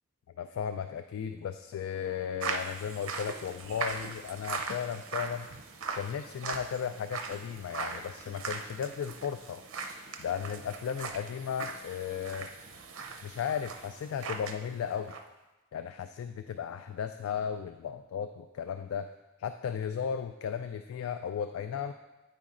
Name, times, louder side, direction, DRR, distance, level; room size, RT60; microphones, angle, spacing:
voice 1, 0.4-5.5 5.9-9.6 10.2-12.5 13.2-15.2 15.7-19.1 19.4-21.9, left 7 dB, 90° left, 8 dB, 0.3 m, -35 dB
sound 1, 2.4-14.6 14.9-15.2, right 4 dB, 80° right, 0.6 m, -40 dB
9.0 x 4.2 x 3.7 m, 1.0 s
head